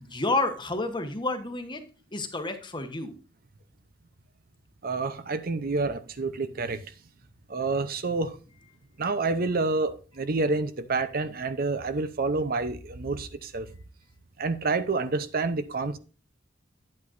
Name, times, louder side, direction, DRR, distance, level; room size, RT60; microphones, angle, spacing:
voice 1, 0.1-1.8 2.1-3.1, left 2 dB, 25° left, 1.1 m, -29 dB
voice 2, 4.8-6.8 7.5-8.4 9.0-13.7 14.4-16.0, right 3 dB, 50° right, 0.7 m, -28 dB
9.5 x 8.7 x 2.6 m
head